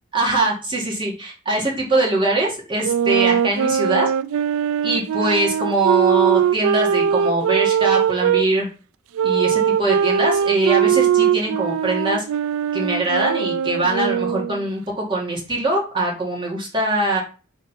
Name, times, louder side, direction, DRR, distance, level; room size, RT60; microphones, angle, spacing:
voice 1, 0.1-4.1 4.8-8.7 9.2-12.2 12.7-17.2, right 2 dB, 25° right, -3 dB, 2.2 m, -22 dB
sound 1, 2.8-8.4 9.1-14.7, right 8 dB, 70° right, 0.3 m, -20 dB
4.5 x 4.0 x 5.5 m, 0.35 s
head